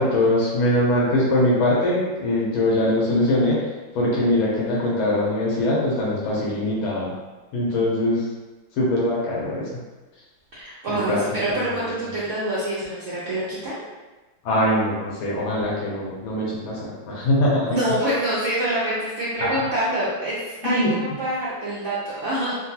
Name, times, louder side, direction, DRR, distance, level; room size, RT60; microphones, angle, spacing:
voice 1, 0.0-3.6 3.9-7.1 7.5-8.2 8.8-9.6 11.1-11.2 14.4-17.8 19.4-19.5 20.6-20.9, left 1 dB, 85° left, -5 dB, 1.6 m, -22 dB
voice 2, 10.5-13.8 17.7-22.6, right 1 dB, 85° right, -9 dB, 0.6 m, -26 dB
3.8 x 2.2 x 2.8 m, 1.2 s
omnidirectional pair, 2.2 m